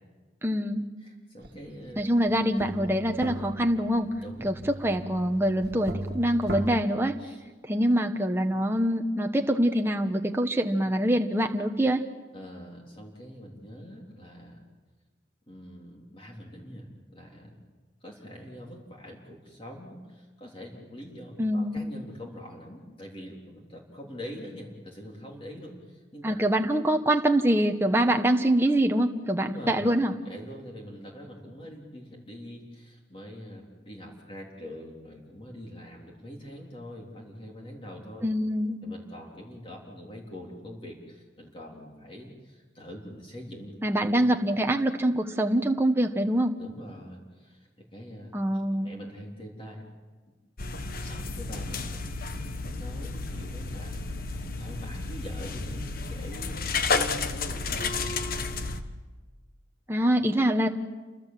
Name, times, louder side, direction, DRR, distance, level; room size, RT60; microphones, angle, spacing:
voice 1, 0.4-0.8 2.0-4.1 4.4-4.5 4.8-7.1 7.7-12.0 21.4-21.9 26.2-30.1 38.2-38.8 43.8-46.5 48.3-48.9 59.9-60.7, right 1 dB, 15° right, 4 dB, 1.2 m, -24 dB
voice 2, 1.0-2.1 4.2-4.7 7.2-7.4 12.3-14.6 15.5-17.6 18.0-26.4 29.4-29.9 30.2-38.3 38.8-44.3 46.6-48.3 48.8-49.8 51.0-58.2 59.9-60.0, equal, 30° left, -1 dB, 3.6 m, -44 dB
sound 1, 1.4-1.6 2.0-6.8, right 1 dB, 55° right, 1.9 m, -37 dB
sound 2, 50.6-58.8, left 4 dB, 50° left, 1.4 m, -32 dB
29.0 x 24.5 x 7.6 m, 1.3 s
head